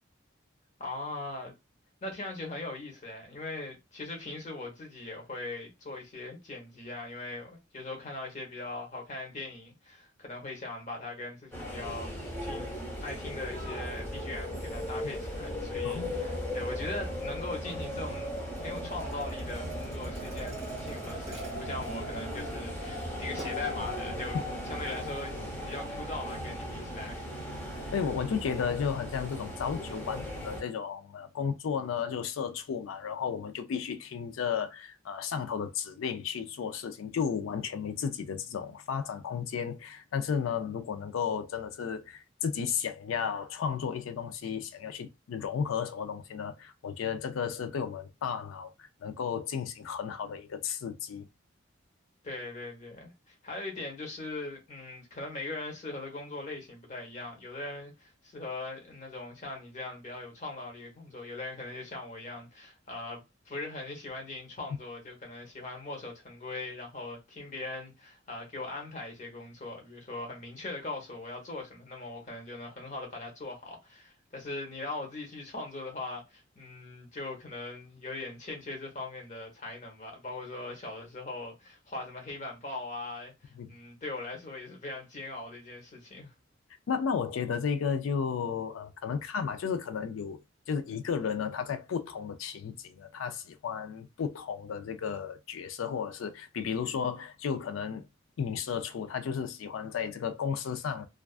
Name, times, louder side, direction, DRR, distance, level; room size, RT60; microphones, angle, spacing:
voice 1, 0.8-1.5 2.0-12.1 12.4-12.7 13.0-24.4 24.7-27.3 52.2-86.3, left 2 dB, 40° left, 0.8 m, -40 dB
sound 1, 11.5-30.6, left 1 dB, 10° left, 0.7 m, -37 dB
Thump thud, 18.6-22.6 23.0-23.8, right 2 dB, 30° right, 0.7 m, -51 dB
voice 2, 27.9-51.3 83.6-83.7 86.9-98.0 98.4-101.1, left 7 dB, 85° left, 0.4 m, -33 dB
2.4 x 2.3 x 2.3 m
head